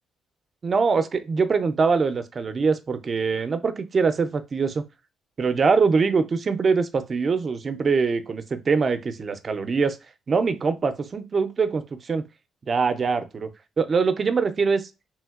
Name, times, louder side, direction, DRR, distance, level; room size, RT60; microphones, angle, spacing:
voice 1, 0.6-4.9 5.4-10.0 10.3-12.3 12.6-13.5 13.8-14.9, right 5 dB, 40° right, 0.4 m, -23 dB
3.0 x 2.7 x 2.3 m
cardioid pair, 90°, 0 cm